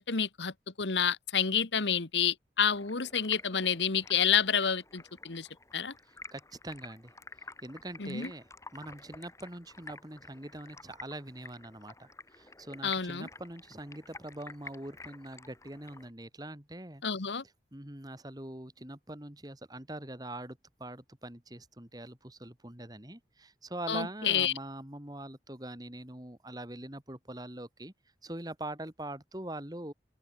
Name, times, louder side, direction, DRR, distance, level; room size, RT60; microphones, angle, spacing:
voice 1, 0.0-5.5 5.7-5.9 8.0-8.3 12.8-13.3 17.0-17.4 23.9-24.5, left 7 dB, 90° left, 1.4 m, -29 dB
Stream, 2.7-16.1, left 3 dB, 15° left, 6.2 m, -50 dB
voice 2, 6.3-7.1 7.6-8.4 8.7-12.1 12.4-17.0 17.7-27.9 28.2-29.9, right 1 dB, 20° right, 2.5 m, -43 dB
open air
head